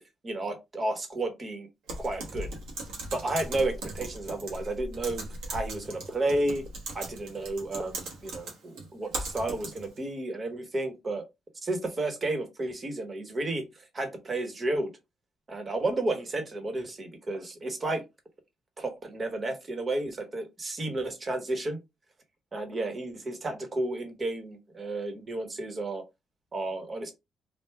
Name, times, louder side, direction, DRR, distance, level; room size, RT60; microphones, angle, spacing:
voice 1, 0.2-1.7 2.0-2.5 3.1-6.7 6.9-11.3 11.6-14.9 15.5-18.0 18.8-21.8 22.5-26.0 26.5-27.1, right 2 dB, 35° right, 1.2 m, -32 dB
Typing, 1.9-10.0, right 2 dB, 90° right, 1.2 m, -39 dB
3.3 x 2.4 x 3.4 m
cardioid pair, 90°, 0 cm